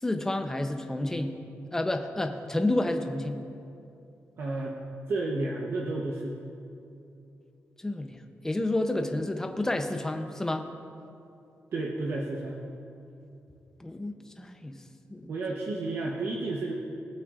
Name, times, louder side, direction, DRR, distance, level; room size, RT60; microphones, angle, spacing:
voice 1, 0.0-1.3 1.7-3.4 7.8-8.2 8.4-10.6 13.8-14.7 15.1-15.3, left 1 dB, 10° left, 6 dB, 0.7 m, -30 dB
voice 2, 4.4-4.8 5.1-6.4 11.7-12.6 15.3-16.7, right 2 dB, 60° right, -2 dB, 1.0 m, -31 dB
20.0 x 9.0 x 2.5 m, 2.7 s
wide cardioid pair, 140°, 5 cm